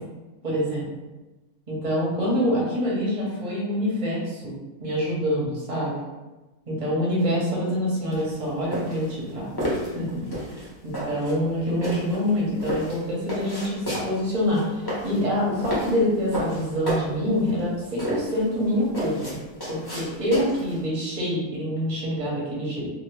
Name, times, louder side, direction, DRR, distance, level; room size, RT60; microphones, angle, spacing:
voice 1, 0.4-0.9 1.7-6.0 6.7-9.5 9.9-19.4 19.7-22.9, equal, 30° right, -5 dB, 0.8 m, -26 dB
sound 1, 8.1-20.8, equal, 20° left, 0.7 m, -32 dB
2.7 x 2.5 x 3.2 m, 1.1 s
omnidirectional pair, 1.6 m